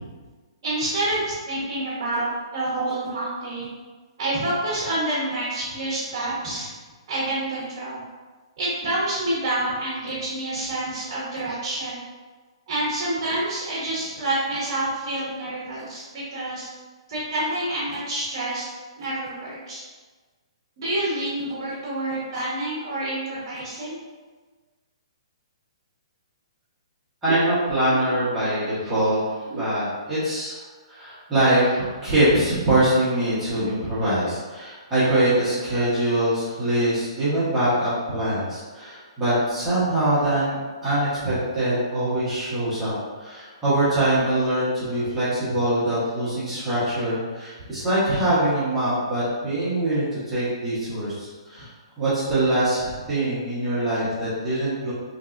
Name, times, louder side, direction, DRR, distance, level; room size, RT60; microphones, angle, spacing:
voice 1, 0.6-3.7 4.2-6.7 7.1-8.0 8.6-12.0 12.7-16.7 17.1-18.7 19.0-19.8 20.8-24.0, right 1 dB, 35° right, -8 dB, 0.9 m, -28 dB
voice 2, 27.2-29.2 29.5-30.6 30.9-40.6 40.8-51.7 52.0-54.9, right 1 dB, 5° right, -14 dB, 0.9 m, -23 dB
3.8 x 2.9 x 2.4 m, 1.3 s
hypercardioid pair, 175°, 3 cm